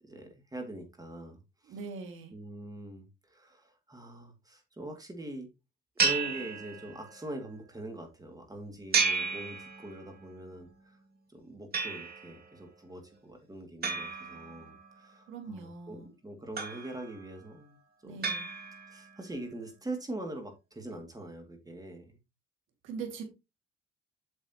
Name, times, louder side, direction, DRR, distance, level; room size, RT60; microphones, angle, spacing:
voice 1, 0.0-1.8 2.3-5.5 6.0-11.0 11.3-18.2 18.9-22.2, right 1 dB, 20° right, 2.3 m, -43 dB
voice 2, 1.6-2.3 15.3-16.1 18.0-18.5 22.8-23.2, right 5 dB, 85° right, 2.1 m, -41 dB
sound 1, 6.0-7.2 8.9-10.2 11.7-12.4 13.8-15.0 16.6-17.3 18.2-19.1, right 5 dB, 50° right, 2.3 m, -32 dB
7.9 x 7.0 x 2.9 m
cardioid pair, 90°, 20 cm